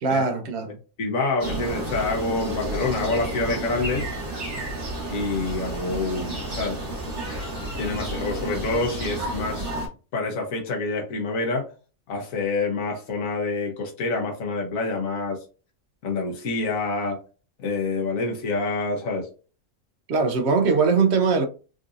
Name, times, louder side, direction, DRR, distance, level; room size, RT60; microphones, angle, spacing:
voice 1, 0.0-0.8 20.1-21.5, right 4 dB, 60° right, 0.8 m, -21 dB
voice 2, 1.0-4.1 5.1-6.8 7.8-11.7 12.1-15.4 16.0-17.2 17.6-19.3, left 3 dB, 80° left, 1.3 m, -27 dB
sound 1, 1.4-9.9, right 1 dB, 40° right, 1.3 m, -31 dB
3.8 x 2.5 x 2.5 m
omnidirectional pair, 1.4 m